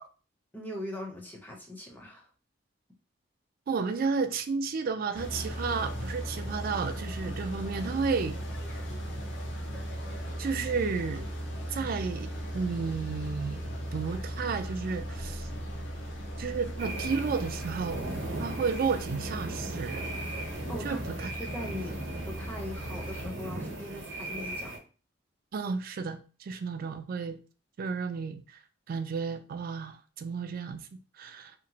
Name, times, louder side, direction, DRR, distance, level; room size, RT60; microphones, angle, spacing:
voice 1, 0.5-2.3 20.7-22.0 22.3-24.8, left 1 dB, 10° left, 0.6 m, -40 dB
voice 2, 3.7-8.4 10.4-11.3 11.7-13.6 13.9-15.5 16.4-18.0 18.4-20.1 20.8-21.3 25.5-27.4 27.8-28.4 28.9-31.5, right 5 dB, 50° right, 0.3 m, -32 dB
sound 1, 5.1-23.3, equal, 70° left, 0.7 m, -37 dB
sound 2, 16.8-24.8, right 2 dB, 75° right, 0.7 m, -38 dB
2.8 x 2.1 x 2.7 m
head